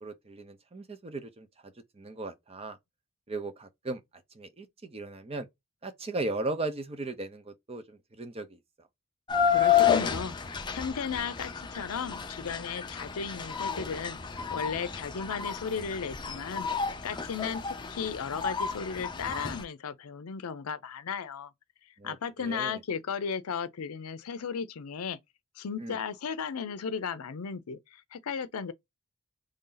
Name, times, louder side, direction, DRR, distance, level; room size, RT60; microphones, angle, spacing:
voice 1, 0.0-1.5 2.0-2.8 3.3-4.0 4.3-5.5 5.8-8.6 22.0-22.8 25.8-26.0, right 2 dB, 25° right, 0.6 m, -37 dB
sound 1, 9.3-19.6, left 8 dB, 20° left, 0.5 m, -30 dB
voice 2, 9.5-16.7 17.0-21.5 22.0-25.2 25.6-28.7, left 6 dB, 75° left, 0.5 m, -35 dB
3.3 x 2.7 x 3.8 m
head